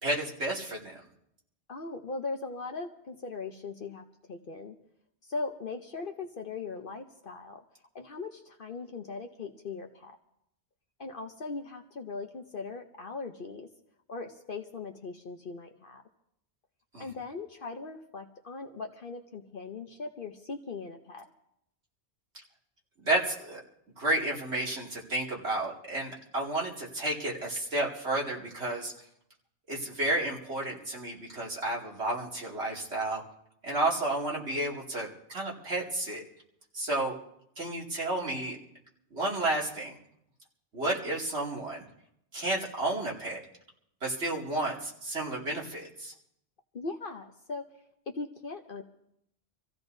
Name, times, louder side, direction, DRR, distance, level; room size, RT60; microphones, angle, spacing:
voice 1, 0.0-1.0 16.9-17.0 23.0-23.6 24.0-28.9 29.7-33.2 33.6-36.2 36.7-37.1 37.6-38.6 39.1-40.0 40.7-41.8 42.3-43.4 44.0-46.1, right 2 dB, 75° right, -3 dB, 2.8 m, -31 dB
voice 2, 1.7-4.0 4.3-4.8 5.2-7.6 7.9-10.1 11.0-13.7 14.1-16.0 17.0-21.2 40.9-41.0 46.7-47.7 48.1-48.8, left 4 dB, 55° left, 4 dB, 1.0 m, -39 dB
26.5 x 15.0 x 2.7 m, 0.76 s
omnidirectional pair, 1.1 m